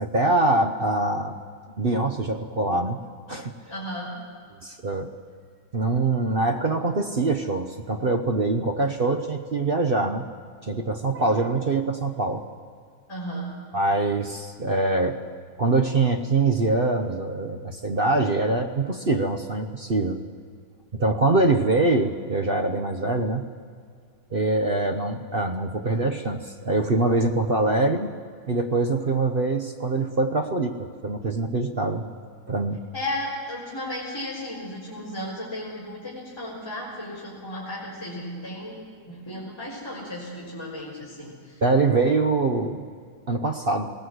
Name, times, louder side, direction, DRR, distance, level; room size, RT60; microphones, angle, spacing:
voice 1, 0.0-1.4 1.8-3.0 3.3-3.5 4.6-5.1 5.7-10.2 10.6-12.4 13.7-15.2 15.6-20.2 20.9-23.5 24.3-28.1 28.5-32.0 32.5-32.8 41.6-42.9 43.3-43.9, right 2 dB, 45° right, 5 dB, 0.8 m, -24 dB
voice 2, 3.7-4.1 13.1-13.5 32.9-38.8 39.0-41.6, left 1 dB, 10° left, -6 dB, 4.1 m, -34 dB
20.5 x 17.0 x 8.0 m, 2.2 s
omnidirectional pair, 2.1 m